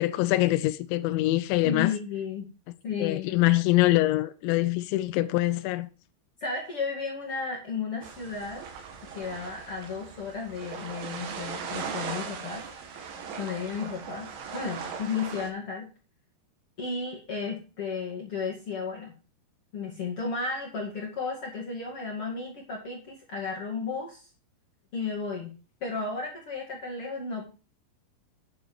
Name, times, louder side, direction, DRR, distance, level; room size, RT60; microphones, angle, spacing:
voice 1, 0.0-1.9 3.0-5.9, left 17 dB, 80° left, 2.9 m, -24 dB
voice 2, 1.6-2.5 2.8-3.4 6.4-8.7 9.1-12.6 12.9-13.0 13.4-15.9 16.8-19.1 19.7-24.3 24.9-25.5 25.8-27.4, left 5 dB, 40° left, 2.2 m, -33 dB
sound 1, 8.0-15.5, right 6 dB, 80° right, 4.1 m, -39 dB
10.5 x 7.0 x 4.6 m
omnidirectional pair, 5.4 m